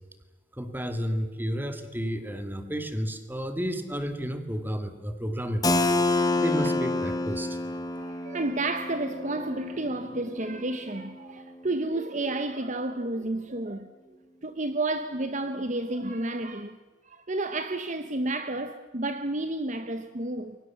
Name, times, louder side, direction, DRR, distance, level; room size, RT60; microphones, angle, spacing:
voice 1, 0.5-5.8 6.3-7.6, equal, 10° right, 2.1 m, -31 dB
Keyboard (musical), 5.6-11.2, left 2 dB, 20° left, 1.5 m, -28 dB
voice 2, 7.9-13.9 14.4-16.8 17.0-20.6, right 2 dB, 40° right, 1.1 m, -31 dB
28.5 x 23.0 x 7.4 m
head